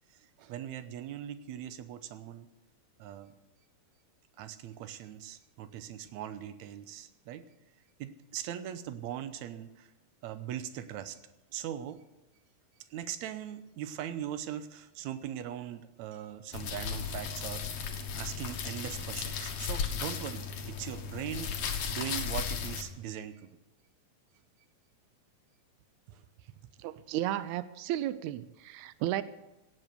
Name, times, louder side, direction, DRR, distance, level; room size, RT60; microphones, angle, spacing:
voice 1, 0.1-2.5 3.0-3.3 4.4-7.5 8.0-9.9 10.2-11.2 11.5-12.0 12.9-23.5 26.1-26.2 26.5-26.6, right 10 dB, 70° right, 11 dB, 1.9 m, -40 dB
sound 1, 16.5-22.8, left 6 dB, 60° left, 2.2 m, -35 dB
voice 2, 26.8-29.2, right 13 dB, 90° right, 14 dB, 1.6 m, -33 dB
17.5 x 7.7 x 6.7 m, 0.98 s
omnidirectional pair, 3.9 m